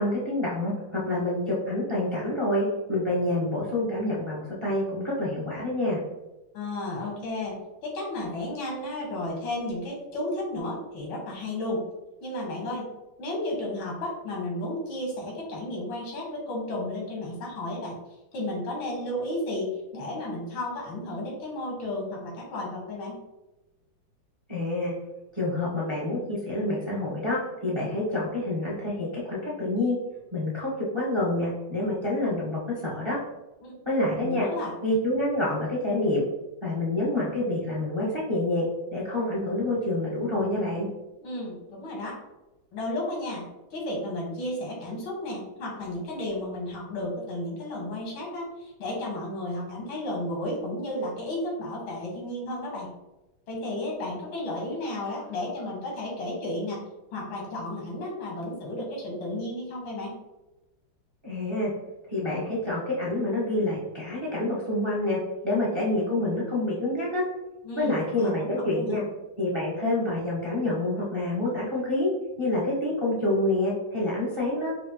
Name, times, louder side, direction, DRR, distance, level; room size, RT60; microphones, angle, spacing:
voice 1, 0.0-6.0 24.5-24.9 25.3-30.0 30.3-33.2 33.8-34.5 34.8-36.2 36.6-40.9 61.2-61.7 62.1-67.2 67.8-69.0 69.4-72.1 72.4-74.7, left 1 dB, 35° right, -5 dB, 0.4 m, -27 dB
voice 2, 6.5-11.8 12.2-12.9 13.2-18.0 18.3-23.2 33.6-33.7 34.2-34.7 41.2-42.2 42.7-52.9 53.5-56.8 57.1-60.1 67.6-69.0, left 1 dB, 90° left, -2 dB, 2.1 m, -33 dB
5.1 x 2.5 x 2.8 m, 1.0 s
omnidirectional pair, 2.2 m